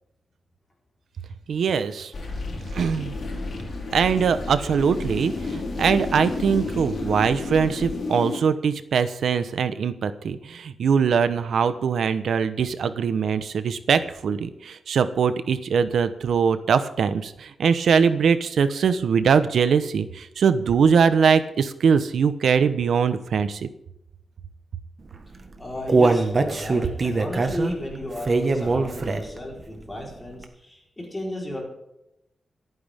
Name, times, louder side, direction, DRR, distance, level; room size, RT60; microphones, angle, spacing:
voice 1, 1.5-2.1 2.7-3.1 3.9-23.7, right 6 dB, 85° right, 11 dB, 1.0 m, -22 dB
sound 1, 2.1-8.4, left 3 dB, 50° left, 4.5 m, -31 dB
Human voice, 25.3-29.5 29.9-30.0 30.4-30.5, right 3 dB, 40° right, 1.5 m, -22 dB
voice 2, 25.6-31.6, left 1 dB, 15° left, -2 dB, 4.2 m, -34 dB
27.5 x 9.5 x 3.6 m, 0.84 s
wide cardioid pair, 130°, 0 cm